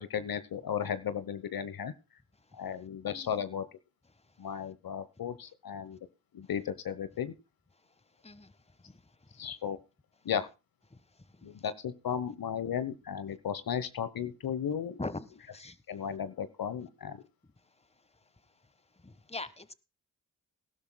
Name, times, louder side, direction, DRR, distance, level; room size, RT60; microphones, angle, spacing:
voice 1, 0.0-1.9 2.5-3.6 4.4-6.0 6.3-7.3 9.4-9.8 10.2-10.5 11.4-15.0 15.9-17.2, left 8 dB, 60° left, 1.1 m, -35 dB
voice 2, 3.0-3.4 8.2-8.6 8.8-9.1 10.9-11.7 15.0-15.8 19.0-19.7, left 2 dB, 15° left, 1.5 m, -43 dB
19.5 x 12.0 x 2.3 m
supercardioid pair, 45°, 39 cm